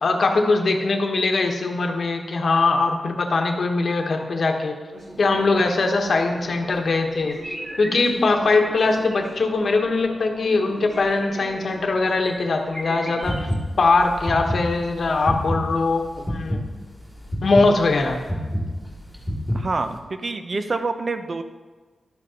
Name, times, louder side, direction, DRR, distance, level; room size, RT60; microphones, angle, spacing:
voice 1, 0.0-4.7 5.2-13.4 13.8-16.6 17.4-18.2, left 3 dB, 55° left, 3 dB, 1.1 m, -21 dB
sound 1, 4.9-13.5, right 1 dB, 70° right, 3.1 m, -42 dB
sound 2, 7.3-8.6 9.1-9.3 10.9-11.7 12.3-12.4 12.6-13.5, equal, 25° right, 2.1 m, -38 dB
sound 3, 13.2-20.0, equal, ahead, 2.2 m, -28 dB
voice 2, 19.5-21.4, right 3 dB, 40° right, 8 dB, 0.6 m, -27 dB
12.0 x 10.5 x 2.9 m, 1.3 s
wide cardioid pair, 130°, 0 cm